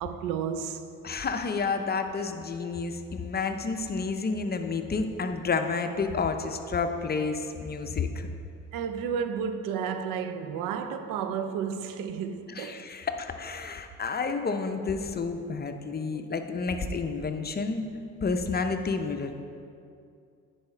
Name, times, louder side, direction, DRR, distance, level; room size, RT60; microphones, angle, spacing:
voice 1, 0.0-0.8 8.7-12.9 16.1-16.2, right 7 dB, 90° right, 0.6 m, -32 dB
voice 2, 1.0-8.3 12.5-17.8 18.2-19.4, left 4 dB, 30° left, 0.6 m, -30 dB
10.0 x 4.9 x 4.4 m
cardioid pair, 85°, 32 cm